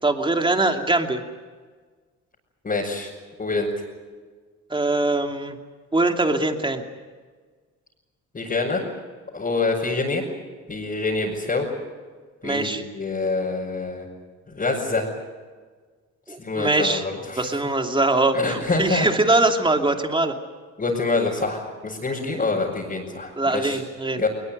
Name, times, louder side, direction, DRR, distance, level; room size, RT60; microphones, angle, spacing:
voice 1, 0.0-1.2 4.7-5.6 5.9-6.8 12.4-12.8 16.3-17.0 17.4-20.3 23.4-24.2, right 2 dB, 15° right, 4 dB, 2.7 m, -22 dB
voice 2, 2.6-3.1 3.4-3.7 8.3-8.8 9.3-10.2 10.7-11.7 12.4-14.0 14.5-15.1 16.4-17.5 18.3-19.1 20.8-23.8 24.2-24.3, left 3 dB, 30° left, -5 dB, 5.9 m, -26 dB
21.0 x 20.5 x 9.3 m, 1.5 s
cardioid pair, 90°, 30 cm